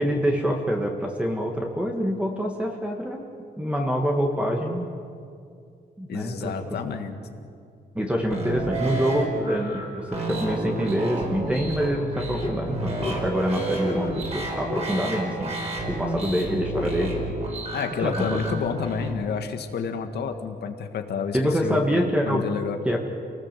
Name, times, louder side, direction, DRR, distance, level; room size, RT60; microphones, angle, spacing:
voice 1, 0.0-3.2 3.6-4.8 6.0-6.8 8.0-17.3 18.0-18.4 21.3-22.4 22.9-23.0, equal, 5° right, 1 dB, 1.7 m, -26 dB
voice 2, 6.1-7.1 17.7-21.8 22.2-22.8, left 6 dB, 80° left, 6 dB, 2.0 m, -29 dB
sound 1, 8.3-19.1, right 2 dB, 40° right, 4.9 m, -31 dB
sound 2, 12.4-12.6 13.0-13.2 13.8-14.0 14.6-14.9 15.8-15.9 16.7-17.2, left 4 dB, 35° left, 3.4 m, -32 dB
29.0 x 19.0 x 7.6 m, 2.4 s
wide cardioid pair, 170°, 17 cm